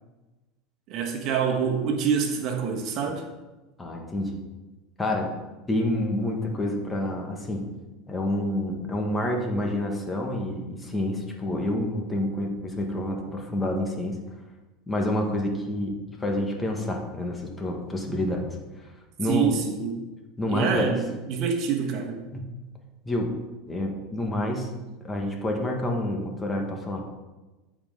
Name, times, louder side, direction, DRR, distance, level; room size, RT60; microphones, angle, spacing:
voice 1, 0.9-3.2 19.3-20.0 20.5-22.2, right 6 dB, 55° right, 3 dB, 1.4 m, -26 dB
voice 2, 3.8-4.4 5.0-5.3 5.7-7.6 8.1-14.2 14.9-18.4 18.8-18.9 19.2-19.5 20.4-20.9 22.3-22.5 23.1-23.3 23.7-24.7 25.0-27.0, left 1 dB, 15° left, 1 dB, 1.9 m, -28 dB
14.0 x 5.0 x 3.9 m, 1.1 s
supercardioid pair, 105°, 0 cm